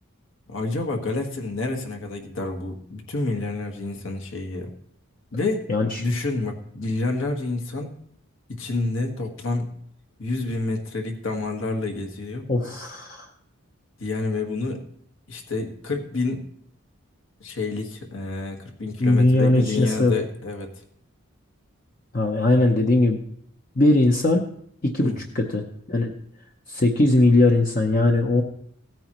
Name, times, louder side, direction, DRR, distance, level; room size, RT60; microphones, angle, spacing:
voice 1, 0.5-4.7 5.3-5.7 6.0-8.0 8.5-9.7 10.2-12.5 14.0-14.8 15.3-16.4 17.4-20.7 25.0-25.1, left 3 dB, 65° left, 4 dB, 1.5 m, -28 dB
voice 2, 5.7-6.0 12.5-13.3 19.0-20.2 22.1-23.2 23.8-24.4 24.8-26.2 26.7-28.4, left 2 dB, 40° left, 2 dB, 0.8 m, -20 dB
16.5 x 9.2 x 3.0 m, 0.67 s
head